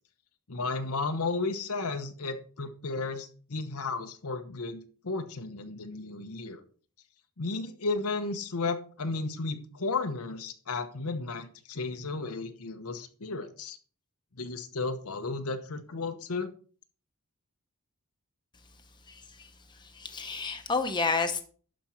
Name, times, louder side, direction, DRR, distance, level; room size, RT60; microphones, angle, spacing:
voice 1, 0.5-6.6 7.4-13.8 14.3-16.5, left 3 dB, 75° left, 1.0 m, -34 dB
voice 2, 19.1-19.5 19.8-21.4, left 4 dB, 20° left, 1.1 m, -30 dB
11.5 x 5.3 x 4.4 m
head